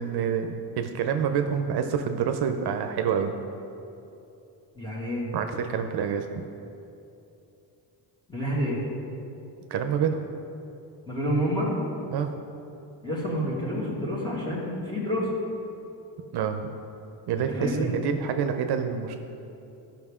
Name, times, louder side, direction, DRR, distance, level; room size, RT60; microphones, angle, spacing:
voice 1, 0.0-3.3 5.3-6.4 9.7-10.2 12.1-12.3 16.3-16.7 17.3-19.2, right 7 dB, 65° right, 6 dB, 0.6 m, -27 dB
voice 2, 4.8-5.3 8.3-8.8 11.1-11.7 13.0-15.3 17.4-17.9, equal, 10° left, -5 dB, 1.9 m, -28 dB
13.5 x 5.8 x 3.6 m, 2.8 s
cardioid pair, 150°, 42 cm